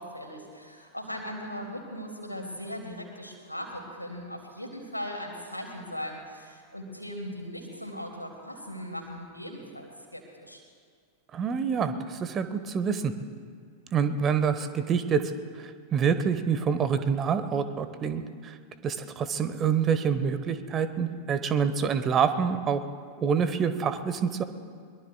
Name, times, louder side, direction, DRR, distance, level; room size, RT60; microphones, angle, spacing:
voice 1, 0.0-10.6, equal, 90° left, 1 dB, 2.5 m, -39 dB
voice 2, 11.3-13.1 13.9-15.3 15.6-18.5 18.8-22.8 23.2-24.4, right 6 dB, 25° right, 11 dB, 1.1 m, -27 dB
22.5 x 22.5 x 2.3 m, 2.1 s
figure-of-eight pair, 90°, 0 cm